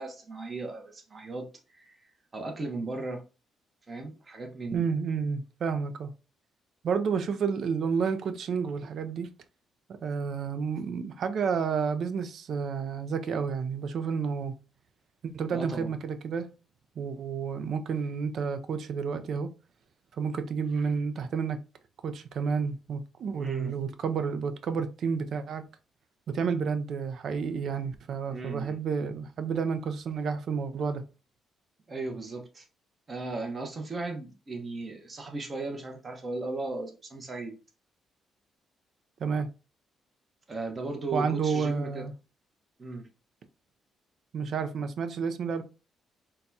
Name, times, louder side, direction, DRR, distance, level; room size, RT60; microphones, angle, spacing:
voice 1, 0.0-2.0 2.3-3.2 3.9-4.8 15.5-15.9 23.4-23.7 28.3-28.8 31.9-32.7 33.1-37.6 40.5-42.0 42.8-43.1, right 2 dB, 30° right, 0.9 m, -36 dB
voice 2, 4.7-6.1 6.8-9.3 10.0-14.5 15.2-16.5 17.0-19.5 20.2-21.6 22.0-25.6 26.3-31.0 39.2-39.5 41.1-42.1 44.3-45.6, right 6 dB, 65° right, 0.5 m, -30 dB
3.9 x 2.3 x 2.7 m
cardioid pair, 90°, 0 cm